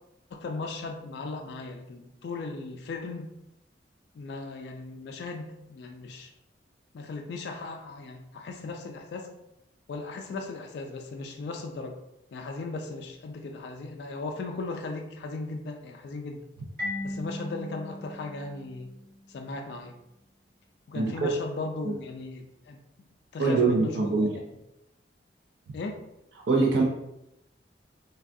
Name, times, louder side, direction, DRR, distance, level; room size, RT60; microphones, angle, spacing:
voice 1, 0.3-3.4 4.1-6.3 6.9-9.3 9.9-12.0 12.3-16.5 17.0-18.9 19.3-20.0 20.9-22.8 23.3-24.3 25.7-26.0, left 3 dB, 65° left, 3 dB, 0.3 m, -37 dB
Marimba xylophone, 16.8-19.4, left 1 dB, 55° right, 1.4 m, -37 dB
voice 2, 20.9-21.3 21.8-22.0 23.4-24.4 26.5-26.8, right 3 dB, 85° right, 0 dB, 0.4 m, -24 dB
3.3 x 2.3 x 2.5 m, 0.86 s
head